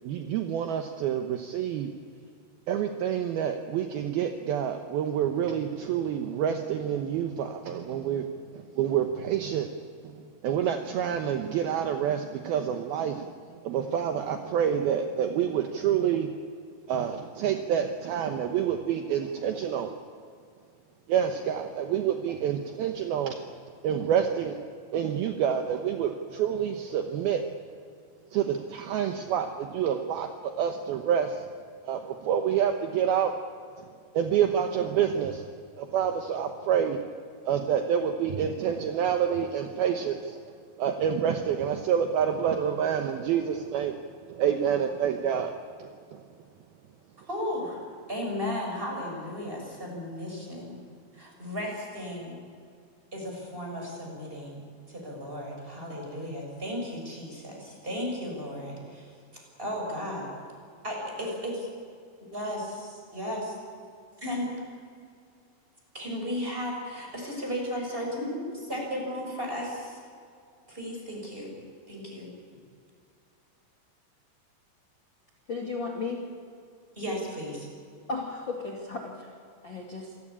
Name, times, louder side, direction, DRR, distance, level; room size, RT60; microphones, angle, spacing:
voice 1, 0.0-1.9 2.7-9.7 10.0-16.4 16.9-20.0 21.1-23.5 23.8-24.7 24.9-27.5 28.3-31.5 31.8-33.4 33.8-35.5 35.8-37.1 37.4-44.0 44.3-46.2, right 8 dB, 70° right, 5 dB, 2.6 m, -28 dB
voice 2, 47.3-47.8 48.1-50.8 51.1-52.4 53.1-60.3 60.8-61.7 62.3-63.5 64.2-64.5 65.9-70.0 70.7-71.5 71.9-72.3 77.0-77.7, equal, 10° right, -1 dB, 7.0 m, -35 dB
voice 3, 75.5-76.2 78.1-79.3 79.6-80.1, left 3 dB, 35° left, -1 dB, 2.4 m, -34 dB
28.0 x 16.5 x 8.6 m, 2.3 s
omnidirectional pair, 5.1 m